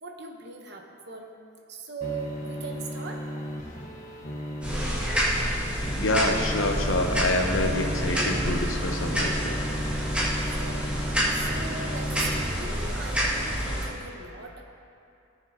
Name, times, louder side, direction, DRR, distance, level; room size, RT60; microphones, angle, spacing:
voice 1, 0.0-1.3 1.7-3.3 10.4-10.9 11.3-14.6, right 4 dB, 55° right, 2 dB, 1.1 m, -39 dB
sound 1, 2.0-12.4, equal, 40° left, 1.2 m, -36 dB
sound 2, 4.6-13.9, equal, 5° right, 2.2 m, -28 dB
voice 2, 6.0-9.5, left 2 dB, 75° left, 3 dB, 1.0 m, -27 dB
19.0 x 7.1 x 2.9 m, 2.6 s
head